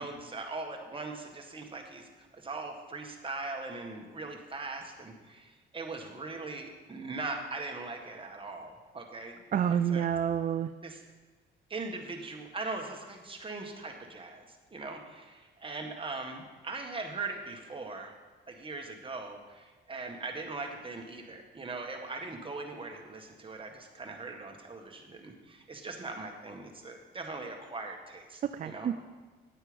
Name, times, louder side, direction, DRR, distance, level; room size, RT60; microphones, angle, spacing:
voice 1, 0.0-9.4 9.7-10.1 10.8-11.0 11.7-18.1 18.5-28.9, right 3 dB, 25° right, 2 dB, 1.8 m, -40 dB
voice 2, 9.5-10.7 28.4-29.0, right 8 dB, 40° right, 11 dB, 0.4 m, -29 dB
9.5 x 9.0 x 5.3 m, 1.3 s
cardioid pair, 90°, 20 cm